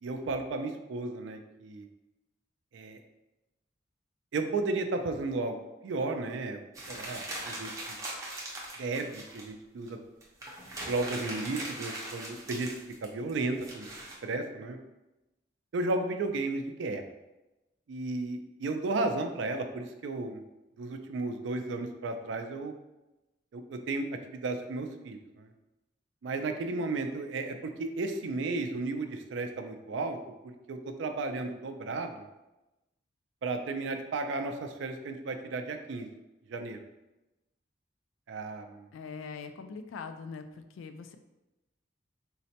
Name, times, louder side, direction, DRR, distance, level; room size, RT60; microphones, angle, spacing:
voice 1, 0.0-1.9 2.7-3.0 4.3-5.6 5.8-7.7 8.8-10.0 10.9-12.7 13.0-13.9 14.2-14.8 15.7-17.0 17.9-20.4 20.8-22.7 23.5-25.5 26.2-30.2 30.7-32.3 33.4-36.1 36.5-36.8 38.3-38.9, right 3 dB, 70° right, 6 dB, 0.3 m, -34 dB
sound 1, 6.7-9.5 9.9-10.0 10.2-14.1, right 1 dB, 15° right, 0.5 m, -40 dB
voice 2, 38.9-40.4 40.8-41.2, left 5 dB, 85° left, 8 dB, 0.3 m, -42 dB
3.9 x 2.1 x 2.8 m, 0.99 s
head